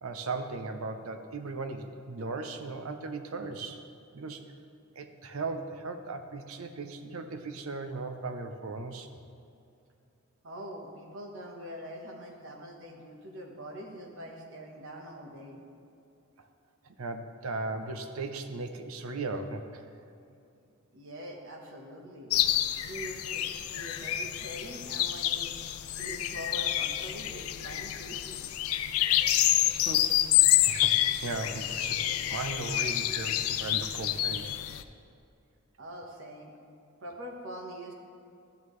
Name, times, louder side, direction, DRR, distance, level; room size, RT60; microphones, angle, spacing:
voice 1, 0.0-3.8 4.1-4.5 5.0-9.1 16.8-19.8 29.9-30.1 30.6-32.0 32.3-34.5, right 3 dB, 80° right, 7 dB, 0.6 m, -37 dB
voice 2, 10.4-15.6 20.9-22.3 22.8-25.6 26.0-28.5 35.8-36.5 37.0-37.9, equal, 65° right, 1 dB, 1.1 m, -43 dB
sound 1, 22.3-34.8, left 13 dB, 80° left, 0.4 m, -28 dB
13.0 x 7.2 x 3.2 m, 2.6 s
head